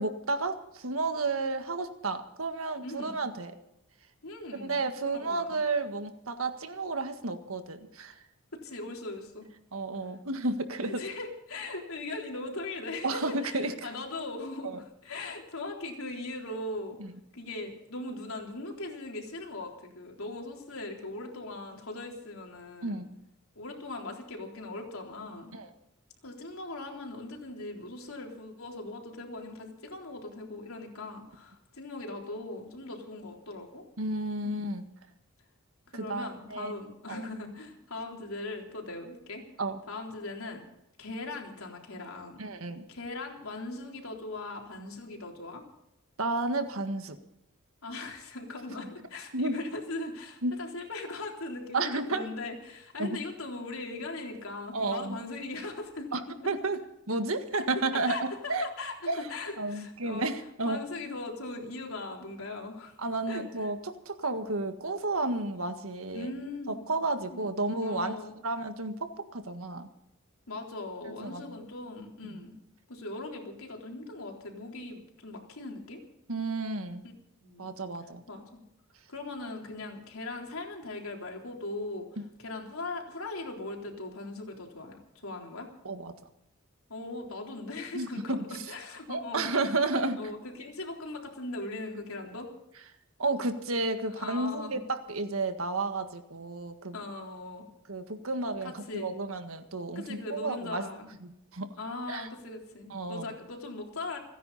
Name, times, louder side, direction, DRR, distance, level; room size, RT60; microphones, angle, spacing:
voice 1, 0.0-3.6 4.5-8.1 9.7-11.0 13.0-13.9 14.6-14.8 17.0-17.1 22.8-23.1 25.5-25.7 34.0-34.8 35.9-36.7 37.1-37.3 39.6-39.8 42.4-42.8 46.2-47.2 49.3-49.6 50.4-50.5 51.7-52.3 53.0-53.2 54.7-55.2 56.1-58.7 59.1-59.3 59.6-60.8 63.0-66.3 66.7-68.2 68.4-69.9 71.1-71.6 72.3-72.4 76.3-77.0 77.6-78.2 85.8-86.1 87.9-88.6 89.1-90.2 93.2-97.0 97.9-100.9 101.2-101.7 102.1-102.3 102.9-103.3, right 2 dB, 90° right, 8 dB, 1.7 m, -32 dB
voice 2, 2.8-3.2 4.2-4.8 5.1-5.5 8.6-9.5 11.0-14.7 15.0-17.0 17.3-23.0 23.6-25.5 26.2-33.8 34.4-34.6 35.9-39.4 39.9-40.7 41.0-42.4 42.9-45.6 47.8-56.2 56.4-56.5 58.1-60.3 60.7-62.9 63.3-63.7 66.1-66.9 67.3-67.4 67.8-68.3 70.5-72.5 72.9-76.0 77.4-77.7 78.3-78.6 79.1-82.1 82.4-85.7 86.9-89.4 90.2-92.5 94.2-94.8 96.9-97.7 98.6-99.1 100.0-101.1 101.8-104.2, left 2 dB, 85° left, 1 dB, 3.8 m, -39 dB
29.5 x 10.0 x 4.2 m, 0.83 s
head